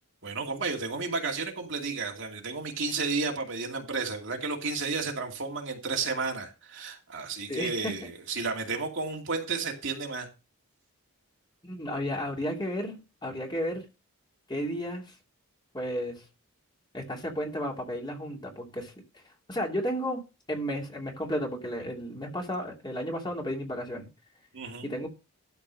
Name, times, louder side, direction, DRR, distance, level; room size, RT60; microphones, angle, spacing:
voice 1, 0.2-10.3 24.5-24.9, right 4 dB, 60° right, 2.5 m, -32 dB
voice 2, 7.5-8.1 11.6-13.8 14.5-15.0 15.7-16.2 16.9-18.9 19.5-24.1 24.8-25.1, equal, 20° left, 2.7 m, -33 dB
12.5 x 4.6 x 6.3 m
head